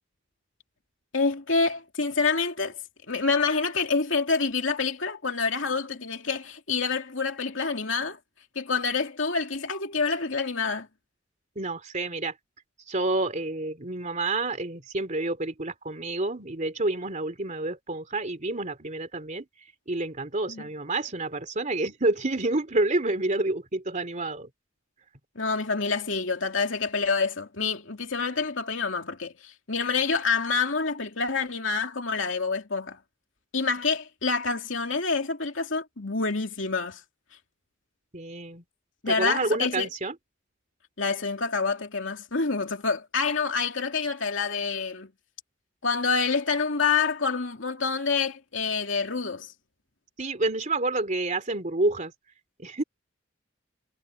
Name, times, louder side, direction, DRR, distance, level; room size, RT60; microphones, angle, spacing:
voice 1, 1.1-2.8 3.1-8.2 8.5-10.9 20.5-20.7 25.4-33.0 33.5-37.0 39.0-39.9 41.0-45.1 45.8-49.5, left 4 dB, 75° left, 2.8 m, -27 dB
voice 2, 11.5-12.3 12.9-19.4 19.9-24.5 38.1-38.6 39.1-40.1 50.2-52.1 52.6-52.8, right 2 dB, 40° right, 3.1 m, -28 dB
head